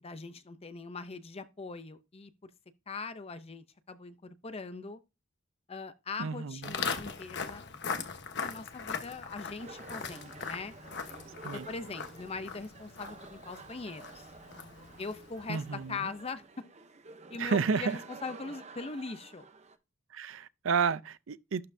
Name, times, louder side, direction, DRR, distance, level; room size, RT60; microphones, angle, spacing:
voice 1, 0.0-2.5 2.9-5.0 5.7-7.7 8.4-10.7 11.5-14.3 15.0-16.4 17.3-19.5, left 4 dB, 30° left, 0.6 m, -41 dB
voice 2, 6.2-6.8 11.4-11.7 15.5-16.1 17.4-18.0 20.1-21.7, right 5 dB, 70° right, 0.5 m, -31 dB
Walk footsteps, 6.6-15.8, left 5 dB, 55° left, 1.1 m, -40 dB
sound 1, 9.6-19.8, right 4 dB, 35° right, 0.8 m, -51 dB
12.0 x 4.2 x 2.7 m
head